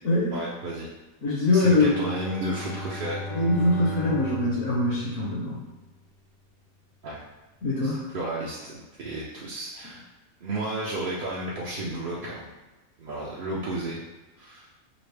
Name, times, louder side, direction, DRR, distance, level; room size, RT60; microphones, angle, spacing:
voice 1, 0.3-0.9 1.5-3.2 7.0-7.2 7.8-10.0 10.4-12.5 13.0-14.0 14.4-14.7, right 1 dB, 55° right, -6 dB, 0.6 m, -32 dB
voice 2, 1.2-2.0 3.3-5.6 7.6-8.0, left 2 dB, 65° left, -5 dB, 1.1 m, -23 dB
Bowed string instrument, 1.6-6.0, left 2 dB, 40° left, 0.6 m, -38 dB
5.0 x 2.1 x 3.3 m, 1.1 s
omnidirectional pair, 1.5 m